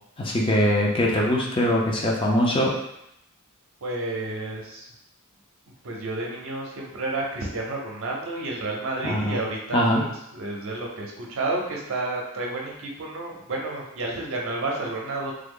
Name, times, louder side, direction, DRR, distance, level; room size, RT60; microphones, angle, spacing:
voice 1, 0.2-2.7 9.0-9.4 9.7-10.0, equal, 25° left, -1 dB, 0.5 m, -22 dB
voice 2, 3.8-4.9 5.8-10.1 10.3-15.3, right 2 dB, 65° right, -1 dB, 0.7 m, -30 dB
3.3 x 2.0 x 3.6 m, 0.79 s
head